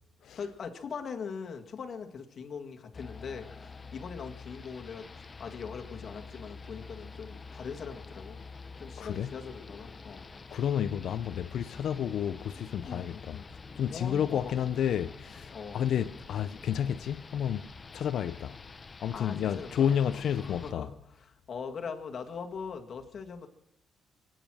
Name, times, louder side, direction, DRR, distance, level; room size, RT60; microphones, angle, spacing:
voice 1, 0.4-8.5 8.8-10.3 12.8-13.5 13.9-14.5 15.5-15.8 19.1-23.5, left 6 dB, 50° left, 2.0 m, -41 dB
sound 1, 2.9-20.7, left 4 dB, 30° left, 1.0 m, -47 dB
voice 2, 9.0-9.3 10.5-13.4 13.8-17.7 17.9-18.6 19.0-20.9, left 9 dB, 70° left, 0.6 m, -31 dB
24.5 x 9.2 x 6.3 m
cardioid pair, 90°, 0 cm